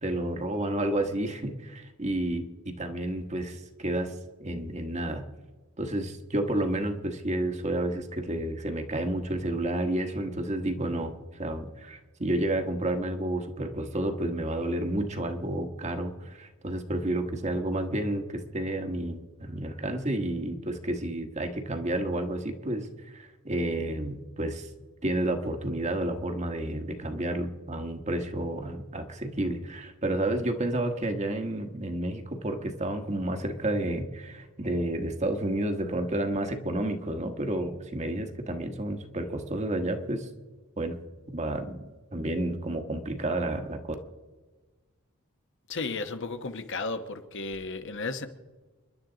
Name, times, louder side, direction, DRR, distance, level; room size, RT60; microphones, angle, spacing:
voice 1, 0.0-4.1 4.4-5.3 5.8-24.7 25.0-40.3 40.8-41.0 41.3-41.8 42.1-43.9, right 1 dB, 30° right, 6 dB, 1.3 m, -30 dB
voice 2, 45.7-48.3, left 3 dB, 55° left, 8 dB, 1.1 m, -34 dB
29.5 x 11.0 x 3.9 m, 1.3 s
head